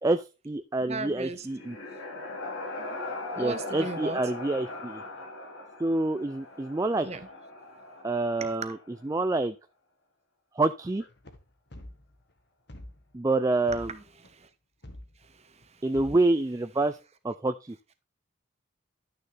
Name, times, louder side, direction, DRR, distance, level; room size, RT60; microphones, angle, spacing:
voice 1, 0.0-1.8 3.4-5.0 5.8-7.1 8.0-8.8 9.0-9.5 10.6-11.0 13.1-13.9 15.8-17.0 17.2-17.8, right 2 dB, 15° right, 0.4 m, -27 dB
voice 2, 0.8-1.5 2.8-4.2 6.9-7.3 8.4-8.8 13.7-13.9 14.2-14.5 15.2-15.8, right 3 dB, 30° right, 1.1 m, -38 dB
sound 1, 1.2-9.0, left 2 dB, 85° left, 2.7 m, -40 dB
sound 2, 11.0-12.3 12.7-13.1 13.7-14.3 14.8-15.3 15.6-15.7 15.9-16.3, left 1 dB, 55° left, 1.5 m, -46 dB
11.5 x 6.6 x 3.4 m
head